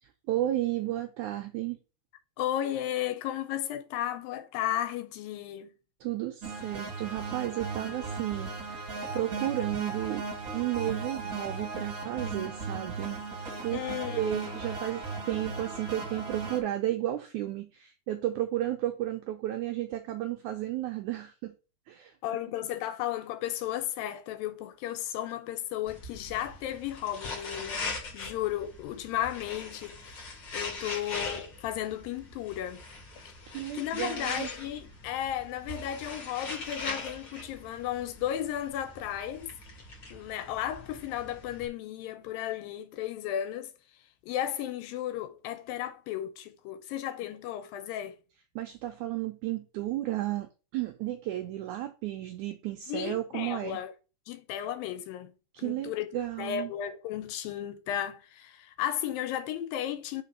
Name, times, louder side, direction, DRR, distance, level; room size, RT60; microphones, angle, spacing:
voice 1, 0.0-1.8 6.0-10.3 10.5-13.2 13.6-13.9 14.1-21.5 21.9-22.1 33.5-34.5 48.5-53.8 55.5-56.7, right 14 dB, 85° right, 1.7 m, -33 dB
voice 2, 2.4-5.7 13.7-14.6 22.2-27.9 28.1-30.1 30.5-32.8 33.7-39.5 40.1-43.7 44.2-48.2 52.9-53.9 54.3-55.3 55.6-56.1 56.4-60.2, left 11 dB, 85° left, 2.5 m, -34 dB
sound 1, 6.4-16.6, right 4 dB, 50° right, 1.0 m, -37 dB
sound 2, 25.9-41.7, left 3 dB, 45° left, 1.7 m, -41 dB
5.0 x 4.2 x 5.9 m
omnidirectional pair, 4.1 m